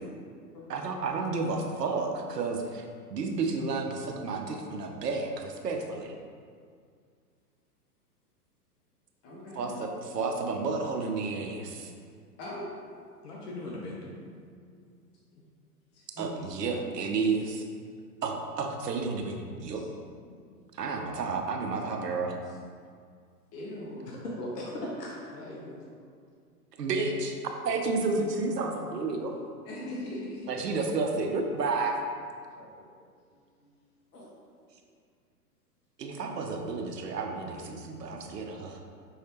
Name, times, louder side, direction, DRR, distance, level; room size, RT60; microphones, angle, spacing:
voice 1, 0.7-2.8 3.1-6.1 9.6-9.9 10.1-11.9 16.2-17.7 18.2-19.8 20.8-22.4 26.8-27.3 27.6-29.3 30.5-31.9 36.0-38.8, right 4 dB, 80° right, 3 dB, 0.8 m, -31 dB
voice 2, 9.2-9.8 12.4-12.7 14.8-14.9 15.9-16.5 23.5-24.2 29.6-30.6 33.2-33.7, left 1 dB, 30° left, -6 dB, 1.4 m, -40 dB
voice 3, 13.2-14.1 24.4-25.8 32.6-32.7 34.1-34.3, left 1 dB, 75° left, -3 dB, 1.0 m, -39 dB
5.5 x 3.2 x 2.9 m, 2.1 s
hypercardioid pair, 115°, 48 cm